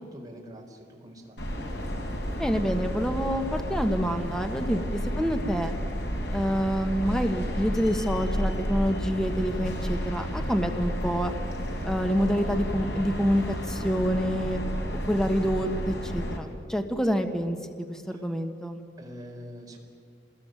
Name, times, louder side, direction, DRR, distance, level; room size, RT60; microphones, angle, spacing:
voice 1, 0.0-1.4 4.7-4.9 18.1-18.2 19.0-19.8, equal, 20° right, 0 dB, 4.3 m, -45 dB
sound 1, 1.4-16.4, equal, 70° left, 4.3 m, -31 dB
voice 2, 2.4-4.8 5.2-5.7 6.3-11.3 11.8-14.6 15.1-18.8, equal, 5° left, 6 dB, 1.4 m, -27 dB
27.0 x 20.5 x 9.1 m, 2.2 s
head